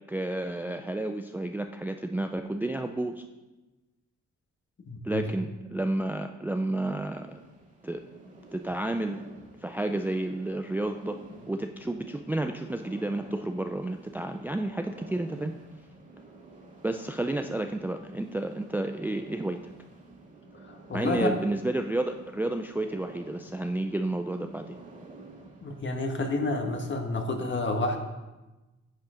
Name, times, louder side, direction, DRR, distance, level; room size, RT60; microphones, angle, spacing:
voice 1, 0.1-3.2 5.0-7.3 7.8-8.0 8.5-9.2 9.6-11.2 11.5-15.5 16.8-19.6 20.9-24.8, right 1 dB, 5° right, 5 dB, 0.4 m, -31 dB
voice 2, 4.8-5.2 20.6-21.3 25.6-28.0, left 2 dB, 40° left, 3 dB, 1.6 m, -29 dB
sound 1, 6.9-25.8, right 2 dB, 25° right, 2.0 m, -50 dB
9.4 x 7.1 x 5.1 m, 1.1 s
cardioid pair, 95°, 30 cm